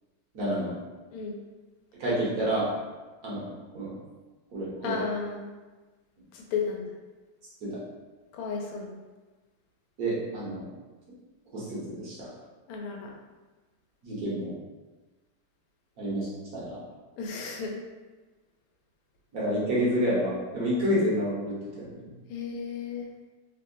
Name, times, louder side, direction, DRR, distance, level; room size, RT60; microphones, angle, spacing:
voice 1, 0.3-0.7 2.0-2.7 3.2-3.4 3.7-3.9 4.5-4.9 7.6-7.8 10.0-10.7 11.5-12.3 14.0-14.5 16.0-16.3 16.5-16.8 19.3-22.1, equal, 55° right, -7 dB, 1.1 m, -29 dB
voice 2, 1.1-1.4 4.8-5.5 6.3-6.9 8.3-8.9 12.7-13.1 17.2-17.8 22.3-23.1, left 5 dB, 90° left, 0 dB, 1.5 m, -33 dB
3.6 x 2.7 x 2.6 m, 1.3 s
omnidirectional pair, 2.4 m